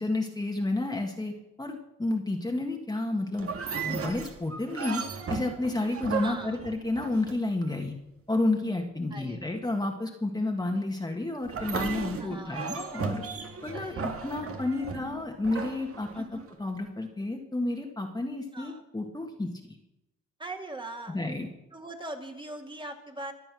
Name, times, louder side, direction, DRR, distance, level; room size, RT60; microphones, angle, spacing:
voice 1, 0.0-5.0 5.3-7.9 8.3-13.2 13.6-19.8 21.1-21.5, left 2 dB, 15° left, 2 dB, 1.7 m, -31 dB
sound 1, 3.4-7.7 11.4-16.5, right 5 dB, 50° right, 2.0 m, -36 dB
voice 2, 6.2-6.6 9.1-9.4 10.7-10.8 12.2-12.7 13.7-14.1 16.1-16.4 18.5-18.8 20.4-21.2 21.7-23.3, right 2 dB, 15° right, 3 dB, 2.2 m, -41 dB
23.0 x 7.7 x 6.2 m, 0.93 s
cardioid pair, 90°, 30 cm